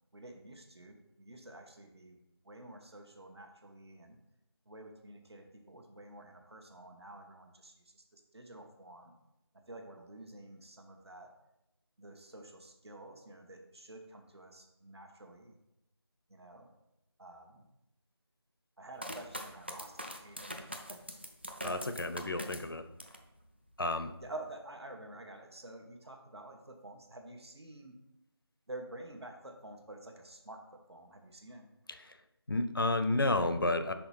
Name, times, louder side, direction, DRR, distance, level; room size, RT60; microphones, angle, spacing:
voice 1, 0.1-2.2 2.4-4.2 4.6-9.1 9.5-11.3 12.0-15.6 16.3-16.7 17.2-17.7 18.8-21.0 21.6-22.0 24.2-28.0 28.7-31.7, right 2 dB, 75° right, 3 dB, 1.2 m, -50 dB
sound 1, 19.0-23.3 23.7-24.4, equal, 25° right, 0.4 m, -43 dB
voice 2, 21.6-22.9 23.8-24.1 31.9-32.2 32.5-33.9, left 2 dB, 55° left, 9 dB, 0.6 m, -31 dB
5.8 x 4.2 x 5.6 m, 0.91 s
figure-of-eight pair, 170°, 14 cm